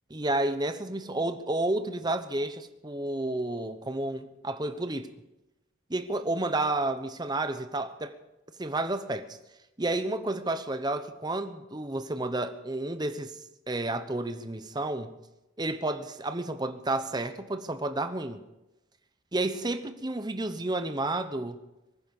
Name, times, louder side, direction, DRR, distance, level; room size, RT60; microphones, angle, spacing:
voice 1, 0.1-5.1 5.9-8.2 8.6-9.4 9.8-13.4 13.7-15.1 15.6-18.4 19.3-21.6, right 2 dB, 20° right, 0.9 m, -31 dB
24.0 x 10.5 x 5.4 m
head